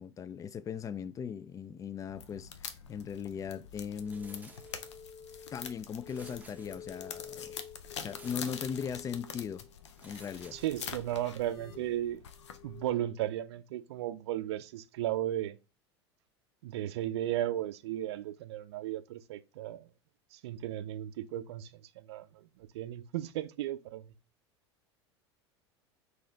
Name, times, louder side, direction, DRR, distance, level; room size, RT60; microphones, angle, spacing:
voice 1, 0.0-4.6 5.5-7.6 8.0-9.7 10.0-10.6, left 7 dB, 25° left, 0.3 m, -39 dB
sound 1, 2.1-12.9, left 7 dB, 80° left, 0.6 m, -46 dB
sound 2, 3.9-13.1, left 7 dB, 65° left, 1.0 m, -51 dB
sound 3, 4.0-5.2 6.0-7.3 8.1-9.1 10.0-11.3, right 3 dB, 10° right, 0.7 m, -57 dB
voice 2, 10.5-12.2 12.6-15.6 16.6-19.9 20.3-24.1, right 13 dB, 70° right, 0.4 m, -35 dB
3.9 x 2.7 x 3.9 m
hypercardioid pair, 85°, 14 cm